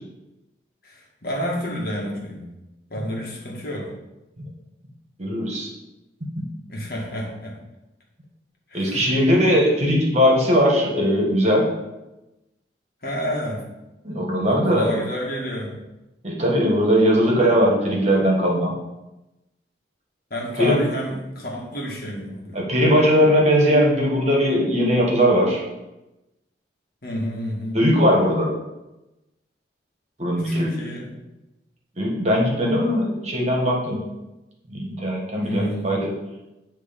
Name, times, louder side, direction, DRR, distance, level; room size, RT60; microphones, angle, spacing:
voice 1, 0.8-2.6 2.9-3.9 6.7-7.6 8.7-9.1 13.0-13.7 14.5-15.8 20.3-22.7 27.0-27.8 30.4-31.1 35.4-36.0, equal, 55° left, -2 dB, 1.6 m, -30 dB
voice 2, 5.2-5.7 6.4-6.5 8.7-11.7 14.0-14.9 16.2-18.7 20.6-20.8 22.5-25.6 27.7-28.5 30.2-30.8 32.0-34.1 34.7-36.0, equal, 40° right, -2 dB, 1.6 m, -19 dB
9.4 x 3.3 x 5.2 m, 0.99 s
head